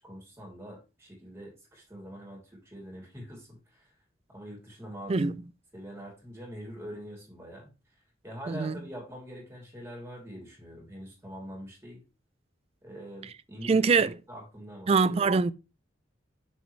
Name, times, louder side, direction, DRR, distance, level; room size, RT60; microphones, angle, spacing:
voice 1, 0.0-3.9 4.3-5.3 5.7-7.7 8.2-12.0 12.8-15.1, equal, 15° right, 3.1 m, -44 dB
voice 2, 13.6-14.1 14.9-15.5, right 4 dB, 35° right, 0.3 m, -23 dB
6.9 x 6.3 x 3.2 m
head